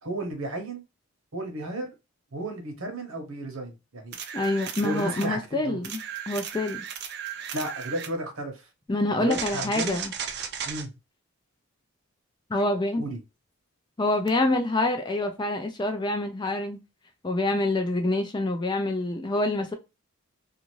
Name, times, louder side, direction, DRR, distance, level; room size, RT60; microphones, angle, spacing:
voice 1, 0.0-0.8 1.3-1.9 2.3-4.2 4.8-5.8 7.5-8.7 9.2-10.0 10.6-10.9 13.0-13.2, right 1 dB, 65° right, 1.0 m, -33 dB
sound 1, 4.1-5.3 5.8-8.2 9.3-10.9 14.3-14.4, right 8 dB, 45° right, 0.4 m, -35 dB
voice 2, 4.3-6.9 7.5-7.6 8.9-10.1 12.5-13.0 14.0-16.8 17.2-19.7, left 2 dB, 20° left, 0.3 m, -26 dB
2.5 x 2.5 x 3.0 m
head